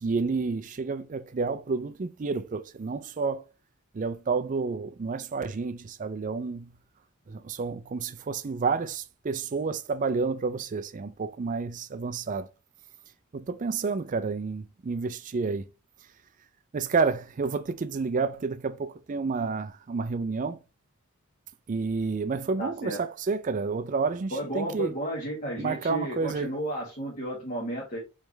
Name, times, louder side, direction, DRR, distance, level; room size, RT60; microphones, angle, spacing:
voice 1, 0.0-3.4 3.9-6.7 7.3-12.5 13.3-15.6 16.7-20.6 21.7-24.9 25.6-26.5, right 4 dB, 35° right, 0.4 m, -30 dB
voice 2, 22.6-23.0 24.3-28.0, right 1 dB, 40° left, 1.5 m, -33 dB
4.8 x 3.2 x 3.3 m
head